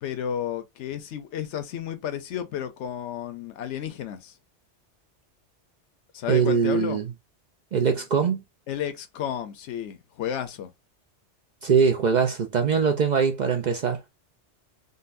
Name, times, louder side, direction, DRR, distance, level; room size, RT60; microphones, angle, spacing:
voice 1, 0.0-4.3 6.1-7.0 8.7-10.7, left 9 dB, 85° left, 0.9 m, -32 dB
voice 2, 6.3-7.0 7.7-8.4 11.6-14.0, right 6 dB, 55° right, 0.5 m, -22 dB
3.9 x 2.2 x 2.5 m
omnidirectional pair, 1.2 m